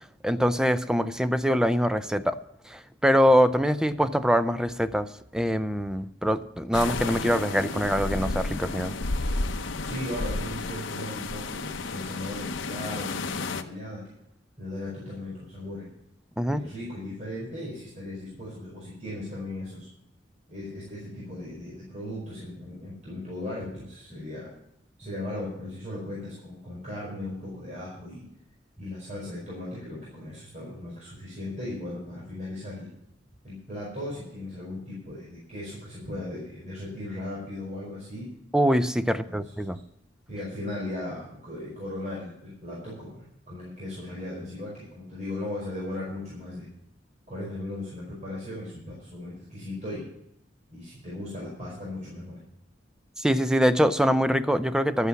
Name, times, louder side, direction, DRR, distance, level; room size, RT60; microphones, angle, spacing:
voice 1, 0.2-2.4 2.7-9.0 16.4-16.6 38.5-39.8 53.2-55.1, equal, 5° right, 11 dB, 0.5 m, -24 dB
sound 1, 6.7-13.6, left 3 dB, 70° left, 0.9 m, -32 dB
voice 2, 9.8-14.0 14.6-15.9 16.5-19.9 20.5-24.5 25.0-28.3 28.8-32.9 33.4-38.3 39.0-39.4 40.3-46.7 47.3-50.1 50.7-52.4, left 1 dB, 40° right, -6 dB, 5.1 m, -37 dB
13.0 x 8.3 x 7.0 m, 0.77 s
head